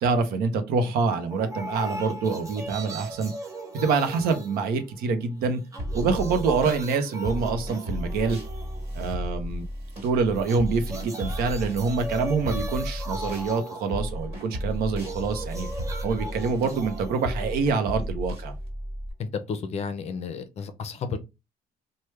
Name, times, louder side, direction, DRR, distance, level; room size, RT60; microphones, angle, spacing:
voice 1, 0.0-3.3 3.7-5.6 5.9-8.4 8.9-9.7 10.0-15.7 16.0-18.5, right 4 dB, 85° right, 0.7 m, -26 dB
sound 1, 1.3-5.3 5.6-9.3 10.3-18.3, right 1 dB, 20° right, 0.5 m, -39 dB
sound 2, 5.8-6.8 7.2-13.5 13.9-19.1, equal, 40° right, 1.5 m, -33 dB
voice 2, 19.2-21.2, left 5 dB, 45° left, 0.5 m, -32 dB
3.2 x 2.2 x 3.1 m
cardioid pair, 140°, 15 cm